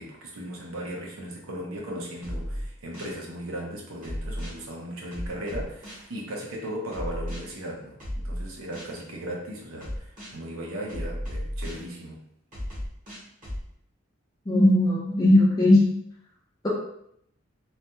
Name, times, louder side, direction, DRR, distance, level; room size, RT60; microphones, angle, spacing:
voice 1, 0.0-12.3, right 1 dB, 85° right, -2 dB, 0.8 m, -37 dB
sound 1, 2.2-3.2 4.0-4.6 5.1-6.1 6.9-7.4 8.0-9.0 9.8-10.4 10.9-11.9 12.5-13.6, equal, 40° right, 1.1 m, -34 dB
voice 2, 14.5-15.9, left 1 dB, 20° left, -5 dB, 0.4 m, -18 dB
3.2 x 2.2 x 2.7 m, 0.72 s
head